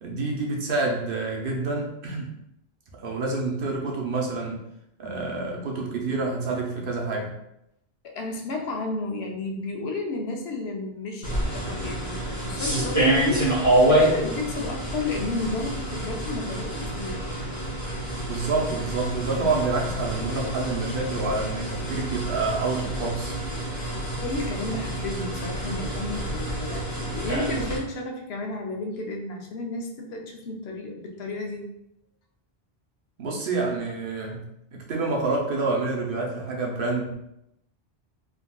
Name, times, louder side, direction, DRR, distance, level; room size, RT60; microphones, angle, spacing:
voice 1, 0.0-2.3 2.9-4.6 5.0-7.3 11.7-11.9 18.3-23.3 33.2-37.2, right 3 dB, 60° right, -1 dB, 0.8 m, -28 dB
voice 2, 8.0-17.2 24.2-31.7, left 2 dB, 85° left, 1 dB, 0.8 m, -32 dB
sound 1, 11.2-27.8, right 1 dB, 20° left, 0.7 m, -27 dB
3.6 x 2.3 x 2.2 m, 0.81 s
omnidirectional pair, 1.1 m